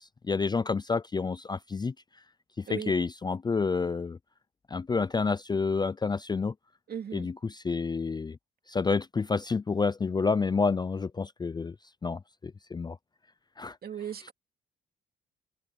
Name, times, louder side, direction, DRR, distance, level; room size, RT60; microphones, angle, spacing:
voice 1, 0.0-1.9 2.6-4.2 4.7-6.5 7.1-8.4 8.7-11.8 12.0-13.0 13.6-13.8, left 4 dB, 20° left, 0.4 m, -29 dB
voice 2, 6.9-7.3 13.8-14.3, right 8 dB, 50° right, 2.6 m, -37 dB
cardioid pair, 90°, 20 cm